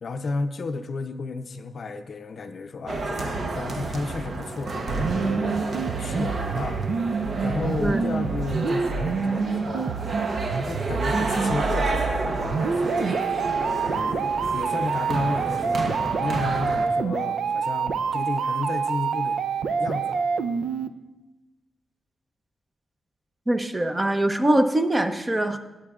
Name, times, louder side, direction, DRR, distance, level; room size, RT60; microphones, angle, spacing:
voice 1, 0.0-5.6 6.0-10.0 10.6-13.2 13.6-19.4 19.7-20.3, left 3 dB, 55° left, 8 dB, 0.5 m, -33 dB
sound 1, 2.9-16.9, right 3 dB, 55° right, 0.8 m, -30 dB
sound 2, 4.9-20.9, right 5 dB, 80° right, 0.4 m, -27 dB
voice 2, 23.5-25.6, right 1 dB, 20° right, 7 dB, 0.6 m, -22 dB
17.5 x 8.6 x 2.4 m, 1.1 s
wide cardioid pair, 115°, 0 cm